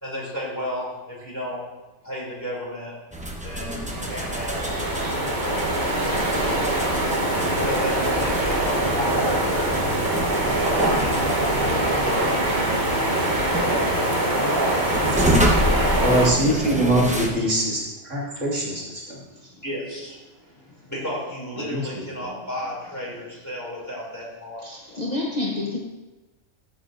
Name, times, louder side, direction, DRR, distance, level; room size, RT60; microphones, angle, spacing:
voice 1, 0.0-1.6 2.0-3.0 3.4-4.9 7.5-9.8 10.5-12.5 13.5-14.7 19.6-24.6, equal, 15° left, -6 dB, 2.8 m, -33 dB
sound 1, 3.1-17.3, equal, 5° right, 0.8 m, -29 dB
sound 2, 3.9-16.3, right 1 dB, 40° right, 1.2 m, -23 dB
voice 2, 16.0-19.2 21.7-22.0, right 1 dB, 75° right, -5 dB, 2.4 m, -23 dB
voice 3, 24.6-25.8, left 2 dB, 35° left, -3 dB, 0.9 m, -30 dB
13.5 x 6.4 x 2.6 m, 1.1 s
omnidirectional pair, 1.3 m